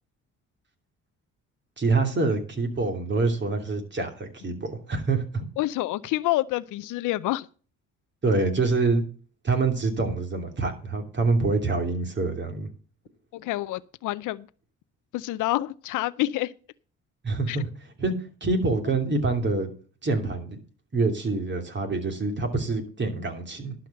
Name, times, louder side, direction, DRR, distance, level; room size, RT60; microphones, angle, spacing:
voice 1, 1.8-5.4 8.2-9.0 9.4-12.7 17.2-17.7 18.0-18.1 18.4-19.7 20.0-20.6 20.9-23.7, right 3 dB, 35° right, 2.9 m, -26 dB
voice 2, 5.6-7.5 13.3-14.5 15.1-16.5 17.5-17.6, left 17 dB, 85° left, 0.5 m, -28 dB
11.5 x 5.0 x 7.9 m
cardioid pair, 90°, 30 cm